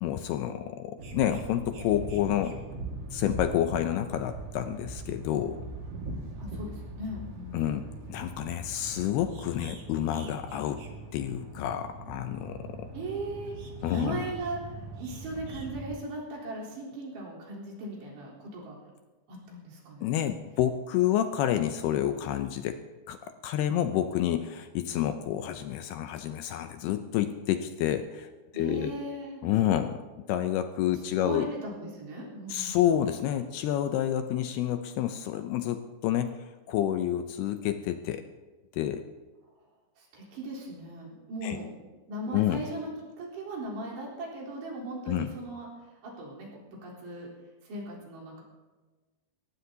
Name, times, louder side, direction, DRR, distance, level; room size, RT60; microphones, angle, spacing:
voice 1, 0.0-2.6 3.1-5.6 7.5-10.8 11.1-12.9 13.8-14.2 20.0-23.2 23.4-28.9 29.4-30.0 30.3-31.5 32.5-38.2 38.7-39.1 41.4-41.6 42.3-42.6 45.1-45.3, left 11 dB, 80° left, 8 dB, 2.4 m, -29 dB
sound 1, 1.0-15.9, right 2 dB, 45° right, 2.2 m, -41 dB
voice 2, 6.4-7.6 12.9-13.6 13.9-18.8 19.3-20.1 28.5-29.4 31.2-32.8 40.0-41.7 42.1-42.9 43.2-45.7 46.0-47.3 47.6-48.4, right 1 dB, 75° right, -4 dB, 5.9 m, -38 dB
23.0 x 18.0 x 2.8 m, 1.2 s
omnidirectional pair, 5.0 m